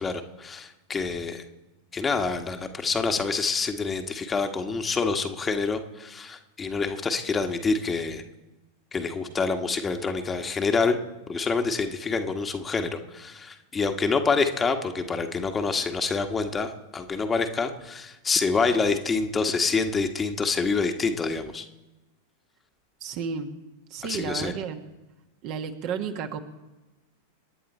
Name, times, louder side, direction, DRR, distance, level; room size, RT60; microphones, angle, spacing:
voice 1, 0.0-1.4 1.9-8.2 8.9-11.0 11.3-21.7 24.0-24.5, left 4 dB, 15° left, 6 dB, 1.4 m, -27 dB
voice 2, 23.0-23.5 23.9-24.8 25.4-26.4, right 6 dB, 40° right, 6 dB, 1.5 m, -32 dB
28.0 x 10.0 x 4.4 m, 1.1 s
figure-of-eight pair, 90°, 0 cm